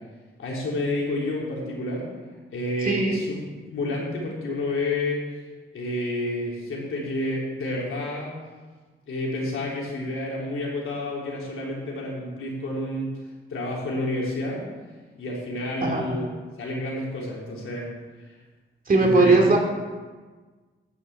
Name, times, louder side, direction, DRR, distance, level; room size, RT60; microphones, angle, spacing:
voice 1, 0.4-2.1 2.5-3.4 3.7-5.2 5.7-8.3 9.1-13.1 13.5-14.6 15.2-16.3 16.6-17.9 19.0-19.4, left 1 dB, 80° left, -3 dB, 3.6 m, -29 dB
voice 2, 2.8-3.2 15.8-16.0 18.9-19.6, right 3 dB, 45° right, 0 dB, 2.8 m, -19 dB
10.5 x 6.5 x 8.1 m, 1.3 s
wide cardioid pair, 105°, 21 cm